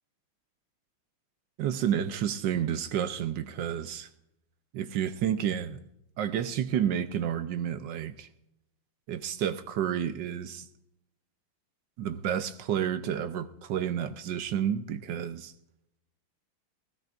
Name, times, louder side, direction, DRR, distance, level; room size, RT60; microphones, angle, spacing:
voice 1, 1.6-4.1 4.7-5.8 6.2-8.3 9.1-10.6 12.0-15.5, right 9 dB, 65° right, 1.3 m, -30 dB
19.5 x 16.5 x 2.5 m
omnidirectional pair, 2.4 m